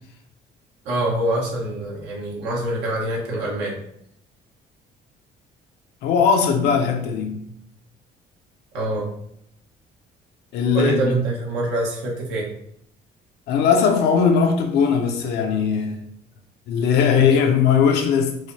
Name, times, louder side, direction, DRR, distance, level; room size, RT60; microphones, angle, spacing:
voice 1, 0.8-3.8 8.7-9.1 10.7-12.5, right 1 dB, 85° right, 1.1 m, -25 dB
voice 2, 6.0-7.5 10.5-11.2 13.5-16.0 16.7-18.4, left 6 dB, 80° left, 0.5 m, -19 dB
4.7 x 2.1 x 2.7 m
cardioid pair, 110°, 17 cm